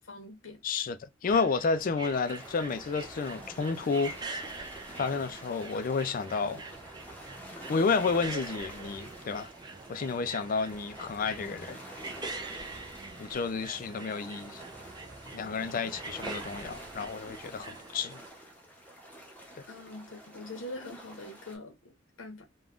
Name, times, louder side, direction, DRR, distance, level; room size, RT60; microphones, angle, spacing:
voice 1, 0.1-0.6 19.7-21.9 22.2-22.4, left 2 dB, 90° left, 0.8 m, -43 dB
voice 2, 0.6-4.5 5.0-6.6 7.7-9.5 9.9-11.8 13.2-14.6 15.3-18.2, left 4 dB, 45° left, 0.4 m, -31 dB
sound 1, 1.2-18.3, right 3 dB, 20° right, 0.4 m, -44 dB
sound 2, 2.0-21.6, equal, 10° left, 0.8 m, -48 dB
3.4 x 2.2 x 2.4 m
head